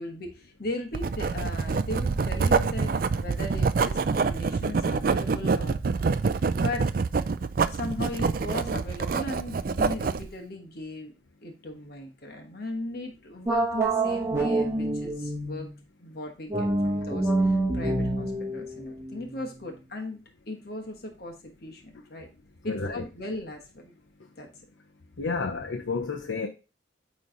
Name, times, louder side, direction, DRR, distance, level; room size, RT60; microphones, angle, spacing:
voice 1, 0.0-6.0 6.3-6.9 7.6-11.1 11.4-15.7 16.0-22.3 22.6-23.9 24.4-24.5, left 2 dB, 55° left, 1.3 m, -38 dB
Writing, 0.9-10.3, right 4 dB, 50° right, 0.4 m, -26 dB
sound 1, 13.5-15.7 16.5-19.8, right 2 dB, 15° right, 1.1 m, -27 dB
voice 2, 22.7-23.0 25.2-26.5, left 4 dB, 90° left, 0.8 m, -30 dB
9.3 x 3.2 x 3.8 m
head